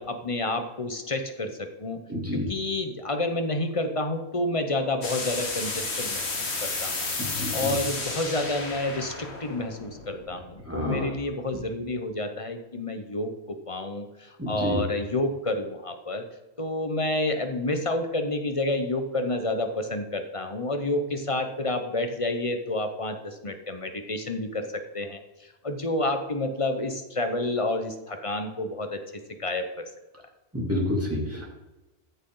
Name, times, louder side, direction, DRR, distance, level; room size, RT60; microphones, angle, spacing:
voice 1, 0.0-2.0 2.3-7.2 7.5-16.2 16.6-29.0 29.4-29.9, left 2 dB, 30° left, 6 dB, 0.9 m, -29 dB
voice 2, 2.1-2.5 7.2-7.8 10.7-11.1 14.4-14.8 30.5-31.4, left 1 dB, 10° right, -3 dB, 2.9 m, -29 dB
sound 1, 5.0-10.7, left 3 dB, 70° left, 1.9 m, -32 dB
14.5 x 6.4 x 3.9 m, 1.0 s
omnidirectional pair, 1.2 m